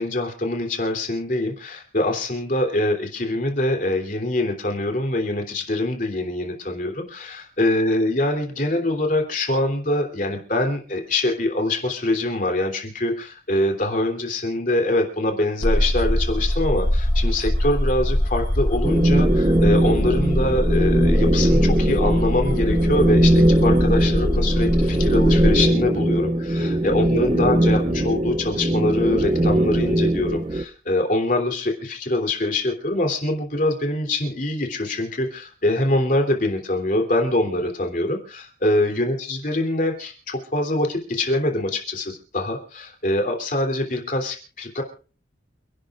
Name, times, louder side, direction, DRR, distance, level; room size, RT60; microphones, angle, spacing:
voice 1, 0.0-44.8, left 1 dB, 45° left, 4 dB, 3.2 m, -24 dB
sound 1, 15.6-25.7, left 1 dB, 25° left, 0.9 m, -23 dB
sound 2, 18.8-30.6, right 1 dB, 25° right, 0.6 m, -20 dB
28.5 x 12.0 x 2.5 m, 0.36 s
head